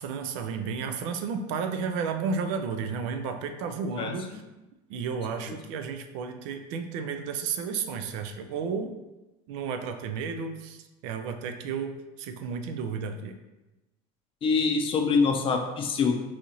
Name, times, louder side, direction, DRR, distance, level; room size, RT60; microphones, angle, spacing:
voice 1, 0.0-4.4 4.9-8.9 9.5-13.3, right 5 dB, 80° right, 6 dB, 0.4 m, -32 dB
voice 2, 4.0-4.4 14.4-16.2, left 4 dB, 35° left, 4 dB, 0.5 m, -25 dB
4.1 x 2.4 x 2.9 m, 1.0 s
supercardioid pair, 105°, 16 cm